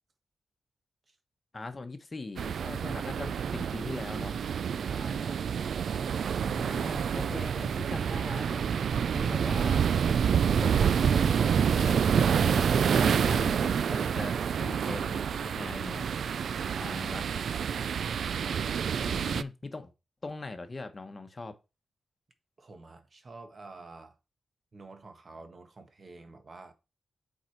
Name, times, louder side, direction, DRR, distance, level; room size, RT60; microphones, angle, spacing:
voice 1, 1.5-4.4 6.4-9.9 10.5-11.3 11.7-16.1 16.8-17.3 19.0-19.9 20.2-21.5, left 3 dB, 30° left, 1.0 m, -41 dB
sound 1, 2.4-19.4, right 7 dB, 80° right, 0.4 m, -28 dB
voice 2, 4.8-5.4 16.5-17.1 18.5-19.2 22.6-24.1 24.7-26.7, right 3 dB, 40° right, 1.3 m, -48 dB
8.0 x 4.8 x 4.6 m
wide cardioid pair, 135°, 0 cm